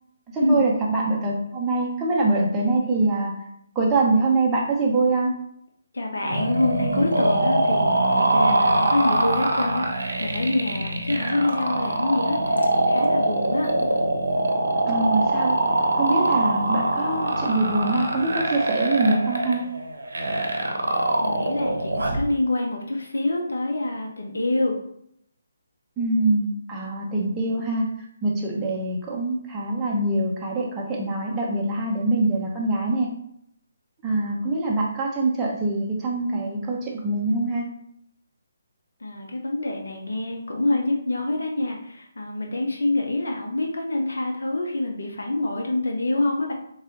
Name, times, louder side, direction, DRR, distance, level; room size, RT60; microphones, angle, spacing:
voice 1, 0.3-3.4 3.7-5.3 14.9-15.6 15.9-19.6 26.0-27.9 28.2-33.1 34.0-37.7, right 2 dB, 15° right, -4 dB, 0.9 m, -24 dB
voice 2, 5.9-13.7 21.2-24.8 39.0-46.5, left 2 dB, 75° left, 1 dB, 0.9 m, -26 dB
sound 1, 6.3-22.3, right 2 dB, 80° right, 0.7 m, -23 dB
3.3 x 2.7 x 4.0 m, 0.72 s
figure-of-eight pair, 150°, 0 cm